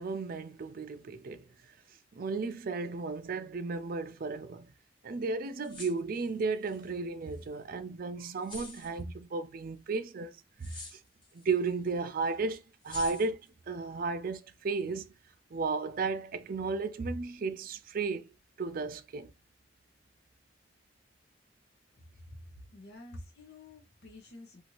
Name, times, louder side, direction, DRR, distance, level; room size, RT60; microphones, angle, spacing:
voice 1, 0.0-1.5 2.2-4.7 5.0-11.0 11.3-15.1 15.5-18.3 18.6-19.3, right 4 dB, 50° right, 0.4 m, -34 dB
sound 1, 5.5-6.9 7.3-7.4 8.4-9.0 10.6-11.5 11.9-12.0 12.8-13.5, left 2 dB, 25° left, 1.3 m, -46 dB
voice 2, 22.7-24.6, left 1 dB, 60° left, 0.7 m, -49 dB
2.7 x 2.5 x 2.9 m
head